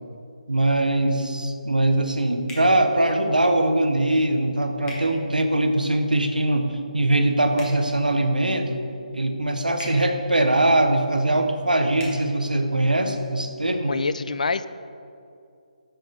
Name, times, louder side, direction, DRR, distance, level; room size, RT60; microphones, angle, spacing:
voice 1, 0.5-8.8 9.1-14.0, right 1 dB, 85° right, 6 dB, 0.8 m, -22 dB
sound 1, 2.5-2.7 4.8-5.0 7.5-7.8 9.7-10.0 11.9-12.1, left 2 dB, 10° left, 1.2 m, -38 dB
voice 2, 13.9-14.7, left 4 dB, 65° left, 14 dB, 0.3 m, -25 dB
8.8 x 6.2 x 3.3 m, 2.5 s
figure-of-eight pair, 145°, 4 cm